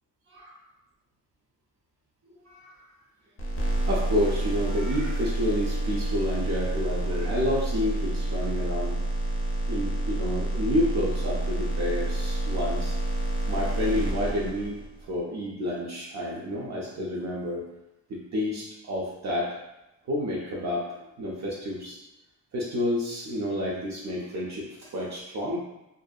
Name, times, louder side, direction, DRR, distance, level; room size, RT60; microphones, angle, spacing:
voice 1, 2.5-2.9 3.9-9.0 9.7-12.9 13.4-17.6 18.1-19.5 20.1-20.8 21.2-22.0 22.5-25.6, left 1 dB, 55° right, -5 dB, 0.5 m, -29 dB
sound 1, 3.4-15.0, right 1 dB, 40° left, 0.5 m, -28 dB
2.5 x 2.5 x 2.2 m, 0.95 s
wide cardioid pair, 170°, 33 cm